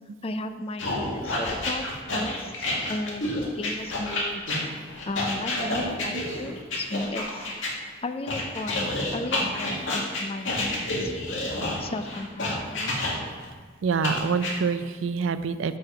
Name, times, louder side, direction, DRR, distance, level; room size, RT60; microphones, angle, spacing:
voice 1, 0.2-1.9 2.1-4.4 5.1-7.5 8.0-11.1 11.8-13.0, left 2 dB, 30° left, 9 dB, 0.5 m, -35 dB
sound 1, 0.8-7.7 8.3-13.5 14.0-14.5, left 1 dB, 75° left, 2.0 m, -29 dB
voice 2, 5.8-6.3 13.8-15.8, right 5 dB, 85° right, 12 dB, 0.4 m, -27 dB
6.8 x 6.3 x 5.7 m, 1.5 s
head